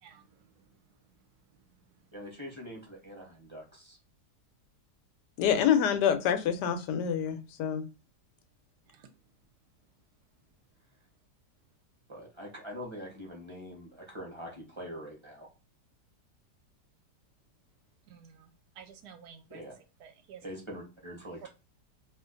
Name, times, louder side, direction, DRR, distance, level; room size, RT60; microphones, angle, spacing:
voice 1, 0.0-0.8 5.4-5.6 8.9-9.1 18.1-19.6 20.0-20.4, right 7 dB, 75° right, 1.1 m, -53 dB
voice 2, 2.1-4.0 12.1-15.5 19.5-19.7 20.4-21.5, equal, 25° right, 0.8 m, -44 dB
voice 3, 5.4-7.8, left 8 dB, 90° left, 1.2 m, -26 dB
2.8 x 2.5 x 3.7 m
omnidirectional pair, 1.8 m